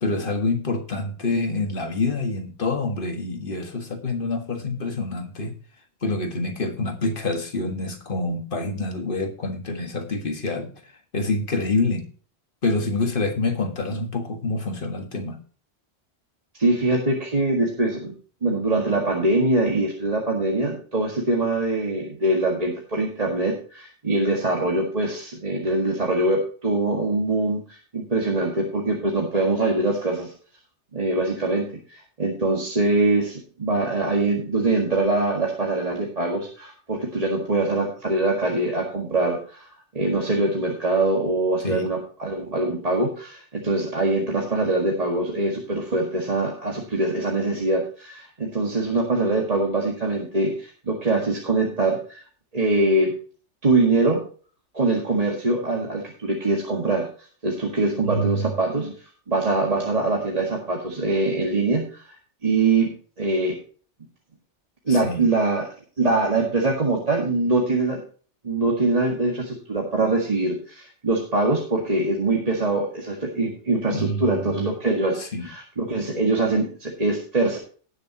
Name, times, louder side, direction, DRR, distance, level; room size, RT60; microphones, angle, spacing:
voice 1, 0.0-5.6 6.0-10.7 11.1-12.1 12.6-15.4 41.6-41.9 58.0-58.5 64.9-65.3 73.9-74.7 75.2-75.5, left 2 dB, 50° left, 4 dB, 1.8 m, -27 dB
voice 2, 16.6-18.1 18.4-30.3 30.9-39.7 39.9-52.2 52.5-53.2 53.6-54.2 54.7-57.1 57.4-58.9 59.3-62.1 62.4-62.9 63.2-63.6 64.9-65.7 66.0-68.0 68.4-77.6, right 2 dB, 35° right, -1 dB, 1.9 m, -23 dB
18.5 x 6.8 x 2.9 m, 0.40 s
omnidirectional pair, 1.2 m